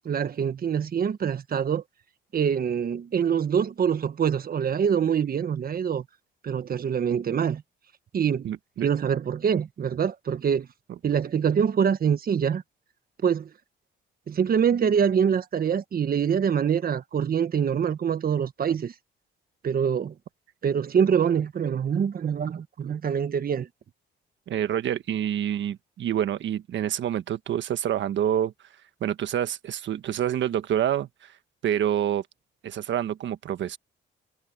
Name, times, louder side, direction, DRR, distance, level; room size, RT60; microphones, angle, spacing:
voice 1, 0.0-1.8 2.3-6.0 6.4-7.6 8.1-8.5 8.8-10.7 11.0-12.6 13.2-13.5 14.3-18.9 19.6-20.1 20.6-23.7, right 7 dB, 50° right, 1.4 m, -25 dB
voice 2, 8.4-8.9 24.5-28.5 29.0-31.3 31.6-32.3 32.6-33.8, right 10 dB, 70° right, 1.4 m, -27 dB
cardioid pair, 90°, 20 cm